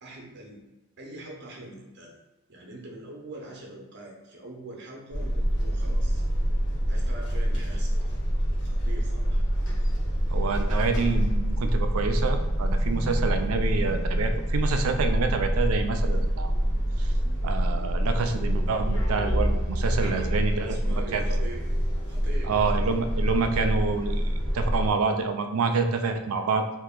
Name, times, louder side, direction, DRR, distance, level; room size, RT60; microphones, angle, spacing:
voice 1, 0.0-0.6 1.0-2.1 2.5-6.2 6.9-8.2 8.6-9.4 20.0-21.6 22.1-22.8, right 1 dB, 55° right, 0 dB, 0.8 m, -43 dB
sound 1, 5.1-24.9, equal, 60° left, 1.0 m, -26 dB
voice 2, 10.3-16.5 17.0-17.1 17.4-21.5 22.5-24.2 24.5-26.6, right 4 dB, 80° right, 7 dB, 0.4 m, -27 dB
2.9 x 2.5 x 3.6 m, 1.1 s
head